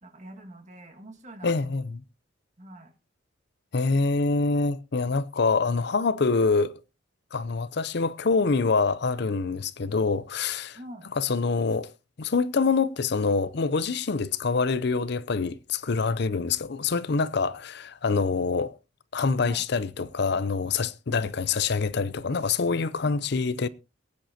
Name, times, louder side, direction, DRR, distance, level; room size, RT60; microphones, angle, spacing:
voice 1, 0.0-1.8 2.6-2.9 10.7-11.1 19.4-19.7 20.8-20.9, right 1 dB, 35° right, 1.9 m, -45 dB
voice 2, 1.4-2.0 3.7-6.8 7.3-10.8 11.2-11.9 12.2-18.7 19.1-23.7, left 4 dB, 55° left, 0.6 m, -25 dB
23.0 x 9.0 x 2.8 m
head